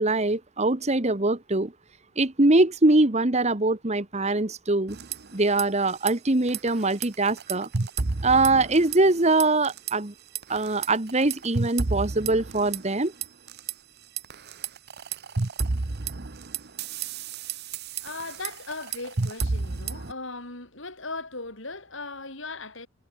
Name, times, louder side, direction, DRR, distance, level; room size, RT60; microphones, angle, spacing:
voice 1, 0.0-1.7 2.2-5.0 5.3-7.7 8.2-10.1 10.5-13.1, right 2 dB, 30° right, 1.3 m, -23 dB
sound 1, 4.9-5.6 5.9-6.1 6.5-9.1 9.4-9.9 10.3-13.7 14.2-20.1, right 4 dB, 50° right, 1.0 m, -31 dB
voice 2, 18.0-22.9, left 3 dB, 60° left, 6.2 m, -38 dB
head